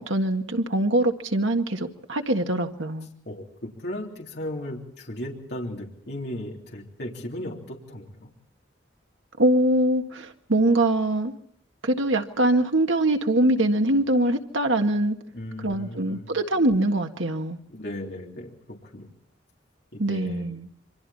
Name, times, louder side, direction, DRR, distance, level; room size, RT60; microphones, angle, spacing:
voice 1, 0.0-3.1 9.4-11.3 11.8-15.2 15.6-17.6 20.0-20.7, right 1 dB, 85° right, 5 dB, 1.8 m, -23 dB
voice 2, 3.3-8.3 15.3-16.3 17.7-19.1 19.9-20.5, left 1 dB, 60° left, -1 dB, 3.5 m, -36 dB
28.0 x 24.5 x 4.3 m, 0.68 s
head